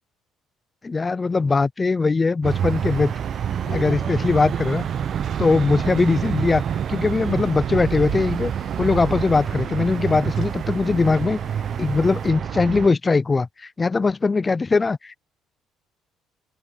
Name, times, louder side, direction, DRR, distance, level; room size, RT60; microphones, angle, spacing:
voice 1, 0.8-3.1 3.7-4.9 5.4-6.6 6.9-8.5 8.8-11.4 11.8-15.2, left 4 dB, 25° left, 0.4 m, -21 dB
sound 1, 2.4-12.3, left 8 dB, 50° left, 6.7 m, -46 dB
sound 2, 2.4-12.9, right 9 dB, 50° right, 0.7 m, -27 dB
open air
cardioid pair, 105°, 0 cm